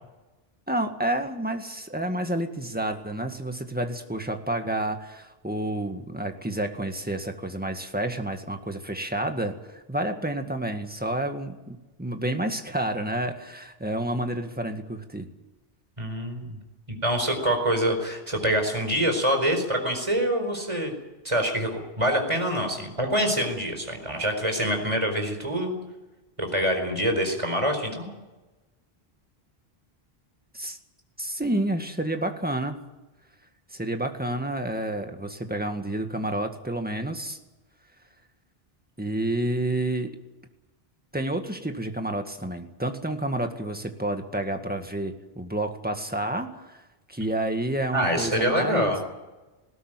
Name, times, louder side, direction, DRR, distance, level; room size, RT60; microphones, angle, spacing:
voice 1, 0.7-15.3 30.5-30.8 31.2-32.8 33.7-37.4 39.0-40.1 41.1-46.8 47.1-48.9, right 1 dB, 10° right, 5 dB, 1.9 m, -29 dB
voice 2, 16.0-16.6 17.0-20.9 21.2-21.7 22.0-25.7 26.4-28.1 47.9-49.0, equal, 30° right, 4 dB, 4.8 m, -25 dB
20.0 x 17.0 x 9.3 m, 1.1 s
omnidirectional pair, 1.1 m